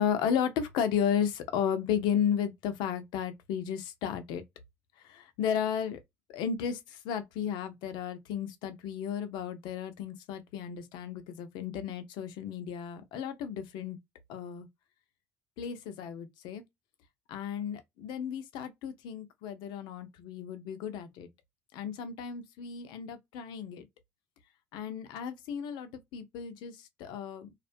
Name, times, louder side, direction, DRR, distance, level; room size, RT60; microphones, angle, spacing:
voice 1, 0.0-4.4 5.0-6.0 6.3-14.0 14.3-14.7 15.6-16.6 17.3-21.3 21.7-23.9 24.7-27.5, left 8 dB, 75° left, 0.6 m, -34 dB
2.4 x 2.2 x 2.5 m
supercardioid pair, 70°, 8 cm